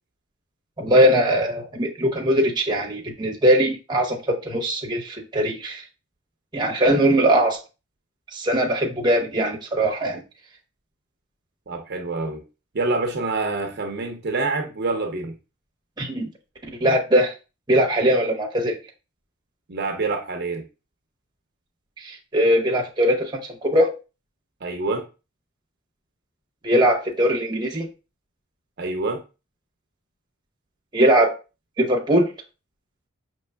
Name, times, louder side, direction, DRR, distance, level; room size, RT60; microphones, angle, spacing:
voice 1, 0.8-5.8 6.5-7.6 8.3-10.2 16.0-16.3 16.8-17.3 17.7-18.8 22.0-23.2 23.6-24.0 26.6-27.9 30.9-31.3 31.8-32.3, equal, 20° right, 1 dB, 0.8 m, -20 dB
voice 2, 11.7-12.4 12.7-15.3 19.7-20.6 24.6-25.0 28.8-29.2, right 3 dB, 50° right, 3 dB, 0.6 m, -26 dB
5.3 x 3.0 x 2.2 m, 0.30 s
head